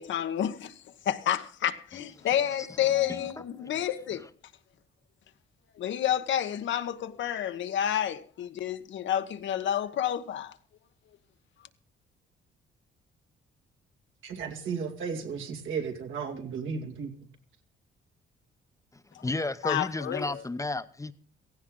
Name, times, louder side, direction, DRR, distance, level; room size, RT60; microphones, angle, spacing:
voice 1, 0.0-4.3 5.8-10.6 19.1-19.3 19.6-20.4, left 10 dB, 70° left, 1.1 m, -30 dB
voice 2, 2.9-3.3 19.2-21.1, left 2 dB, 15° left, 0.8 m, -32 dB
voice 3, 14.2-17.1, right 6 dB, 75° right, 2.5 m, -34 dB
16.5 x 15.5 x 3.9 m
cardioid pair, 90°, 20 cm